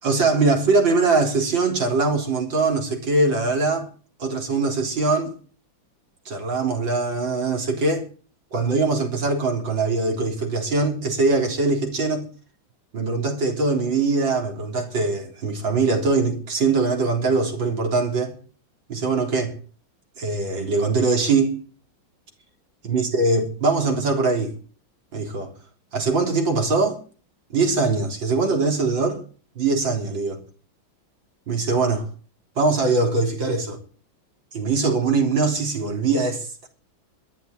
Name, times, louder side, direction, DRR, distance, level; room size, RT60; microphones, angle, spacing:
voice 1, 0.0-3.9 4.2-5.3 6.3-8.1 8.5-12.2 12.9-18.3 18.9-19.5 20.2-21.6 22.8-24.5 25.1-25.5 25.9-27.0 27.5-29.2 29.6-30.4 31.5-32.1 32.6-33.8 34.5-36.7, right 3 dB, 65° right, 4.4 m, -22 dB
13.5 x 10.0 x 9.4 m
omnidirectional pair, 2.2 m